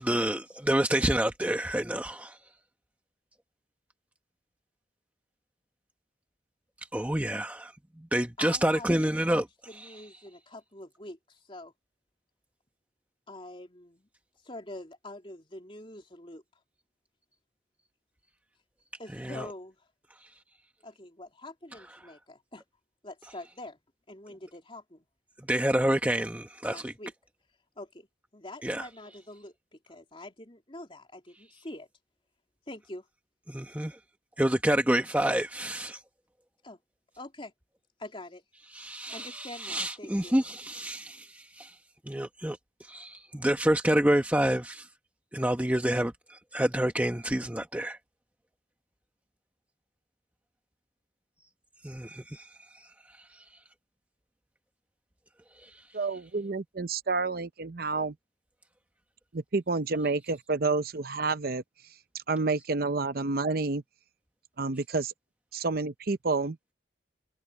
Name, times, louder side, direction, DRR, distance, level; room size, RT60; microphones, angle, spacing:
voice 1, 0.0-2.4 6.9-9.5 9.8-9.9 19.1-19.5 25.5-26.9 28.6-28.9 33.5-34.0 34.4-36.0 38.7-41.7 42.1-44.9 45.3-48.0 51.8-52.5 52.8-52.9 53.3-53.4 55.6-55.8, right 1 dB, 10° right, 1.0 m, -28 dB
voice 2, 8.4-11.7 13.3-14.1 14.4-16.4 19.0-19.8 20.8-22.6 23.0-23.8 24.1-25.0 26.7-27.1 27.8-28.1 28.3-31.9 32.7-33.0 36.6-36.8 37.2-37.5 38.0-38.4 39.1-40.4, left 1 dB, 30° left, 3.2 m, -45 dB
voice 3, 55.9-58.1 59.3-61.6 62.1-63.8 64.6-65.1 65.5-66.6, right 3 dB, 50° right, 0.7 m, -29 dB
head